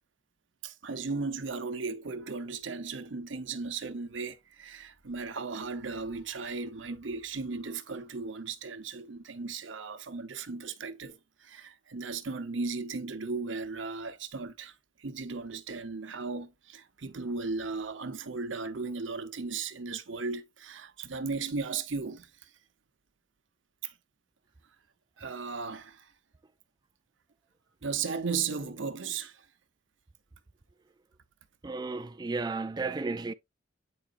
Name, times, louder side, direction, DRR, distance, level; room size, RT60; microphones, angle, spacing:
voice 1, 0.6-22.5 23.8-23.9 25.2-26.1 27.8-29.5, right 4 dB, 90° right, 0.9 m, -36 dB
voice 2, 31.6-33.3, right 3 dB, 20° right, 0.4 m, -33 dB
8.7 x 4.9 x 2.5 m
head